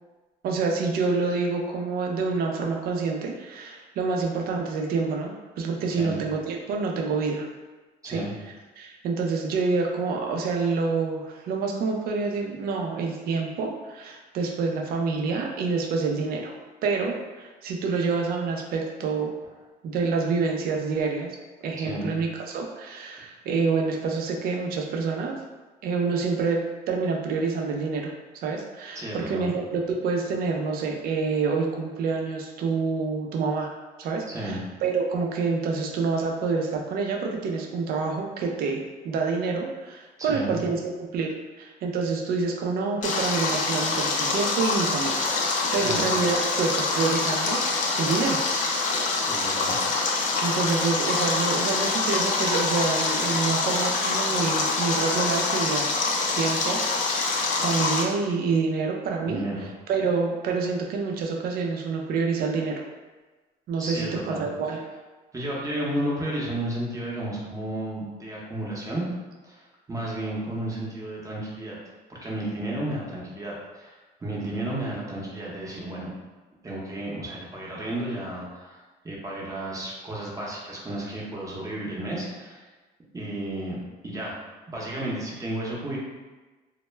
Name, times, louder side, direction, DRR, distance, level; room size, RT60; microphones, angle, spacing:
voice 1, 0.4-7.5 8.0-8.2 8.8-16.6 16.8-19.3 19.8-21.3 21.6-25.4 25.8-26.6 26.9-33.7 34.0-40.8 41.1-47.6 48.0-48.4 50.4-55.9 56.4-59.4 59.9-62.8 63.7-64.8, right 4 dB, 60° right, 1 dB, 0.4 m, -27 dB
voice 2, 28.9-29.5 34.3-34.6 40.2-40.6 45.8-46.0 49.2-49.8 59.2-59.7 63.8-64.8 65.3-69.1 69.4-71.8 72.1-74.0 74.2-76.1 76.6-78.8 79.0-82.7 83.1-83.8 84.0-84.4 84.7-86.0, right 1 dB, 20° right, -4 dB, 0.7 m, -32 dB
Stream, 43.0-58.0, left 3 dB, 50° left, 0.4 m, -25 dB
2.1 x 2.1 x 3.1 m, 1.2 s
cardioid pair, 110°, 17 cm